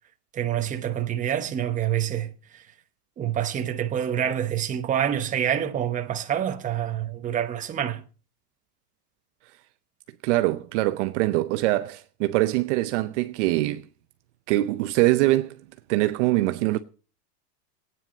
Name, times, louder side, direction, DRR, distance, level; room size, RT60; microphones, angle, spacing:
voice 1, 0.3-2.3 3.2-8.0, right 10 dB, 15° right, 0.9 m, -27 dB
voice 2, 10.2-13.8 14.5-15.6 15.9-16.8, right 17 dB, 45° right, 0.7 m, -23 dB
16.0 x 9.4 x 5.2 m
supercardioid pair, 150°, 48 cm